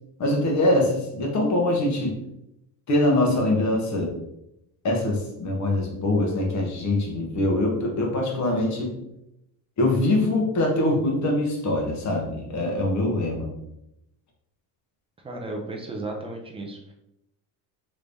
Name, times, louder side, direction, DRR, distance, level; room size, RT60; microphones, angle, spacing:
voice 1, 0.2-2.2 2.9-4.1 4.8-8.9 9.8-13.5, left 1 dB, 35° left, 1 dB, 0.9 m, -23 dB
voice 2, 15.2-16.9, right 2 dB, 15° right, 1 dB, 0.4 m, -34 dB
3.4 x 3.1 x 2.6 m, 0.83 s
cardioid pair, 130°, 46 cm